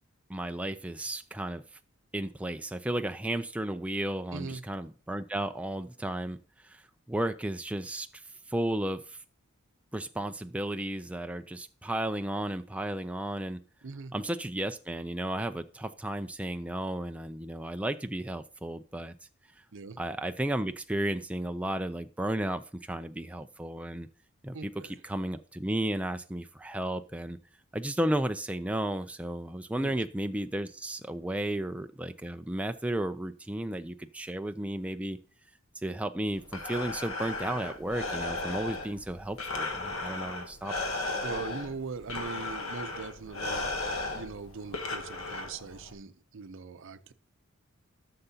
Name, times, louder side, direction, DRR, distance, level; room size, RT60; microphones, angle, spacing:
voice 1, 0.3-1.6 2.1-6.4 6.6-6.8 7.1-8.1 8.5-9.2 9.9-13.6 14.1-19.1 20.0-24.1 24.4-27.4 27.7-35.2 35.8-40.8, right 1 dB, 5° right, 0.3 m, -33 dB
voice 2, 4.3-4.6 13.8-14.1 19.7-20.0 24.5-25.0 29.8-30.0 41.2-43.7 44.1-47.1, right 4 dB, 65° right, 0.6 m, -41 dB
Breathing, 36.3-45.9, left 2 dB, 80° left, 1.4 m, -36 dB
13.5 x 6.7 x 2.8 m
head